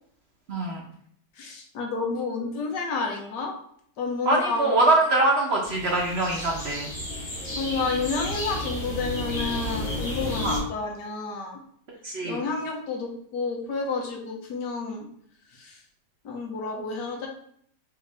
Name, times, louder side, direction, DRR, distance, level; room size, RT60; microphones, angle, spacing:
voice 1, 0.5-0.8 4.3-6.9 10.4-10.6 12.0-12.4, right 2 dB, 50° right, -1 dB, 0.9 m, -23 dB
voice 2, 1.4-3.5 4.0-4.7 7.6-11.6 12.2-15.1 15.5-15.8 16.2-17.3, left 4 dB, 90° left, 1 dB, 1.5 m, -30 dB
sound 1, 5.6-10.6, left 1 dB, 35° left, 1.3 m, -32 dB
5.6 x 2.6 x 3.3 m, 0.64 s
omnidirectional pair, 1.8 m